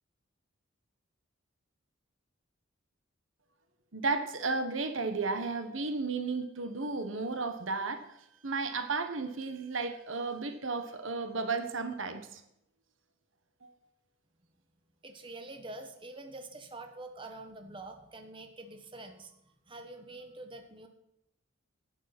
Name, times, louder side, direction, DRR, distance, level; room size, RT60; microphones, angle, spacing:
voice 1, 3.9-8.2 8.4-12.4 13.6-13.7, right 3 dB, 75° right, 8 dB, 1.3 m, -33 dB
voice 2, 15.0-20.9, right 2 dB, 25° right, 5 dB, 1.3 m, -46 dB
11.5 x 9.3 x 6.0 m, 0.80 s
head